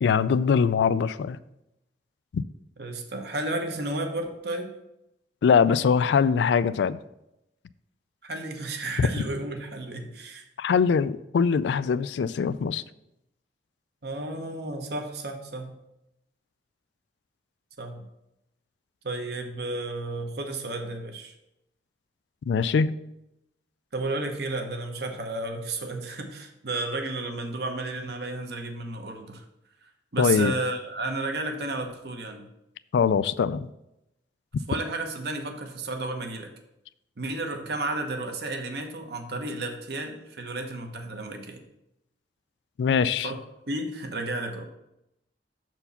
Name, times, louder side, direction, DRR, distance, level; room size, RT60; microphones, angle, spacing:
voice 1, 0.0-1.4 2.3-2.4 5.4-7.0 9.0-9.1 10.6-12.8 22.5-23.0 30.2-30.5 32.9-33.7 42.8-43.3, left 6 dB, 80° left, 16 dB, 0.3 m, -22 dB
voice 2, 2.8-4.7 8.2-10.5 14.0-15.7 17.8-18.0 19.0-21.3 23.9-29.4 30.1-32.5 34.7-36.5 37.2-41.6 43.2-43.4 43.7-44.6, right 2 dB, 65° right, 4 dB, 1.0 m, -32 dB
6.9 x 4.5 x 5.6 m, 0.86 s
head